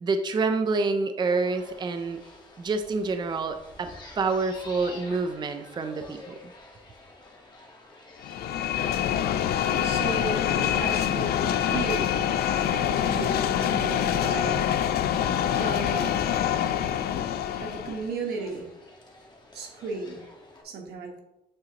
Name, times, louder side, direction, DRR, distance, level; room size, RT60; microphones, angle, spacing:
voice 1, 0.0-2.2 2.6-6.4, right 4 dB, 25° right, 7 dB, 0.4 m, -27 dB
sound 1, 1.2-20.6, left 2 dB, 25° left, 1.4 m, -50 dB
sound 2, 8.2-18.1, left 10 dB, 75° left, 0.4 m, -25 dB
voice 2, 9.8-12.2 12.7-14.6 15.5-16.2 17.4-18.7 19.5-20.2 20.6-21.2, right 3 dB, 90° right, 2 dB, 1.3 m, -34 dB
8.7 x 3.9 x 2.8 m, 0.93 s
cardioid pair, 115°, 16 cm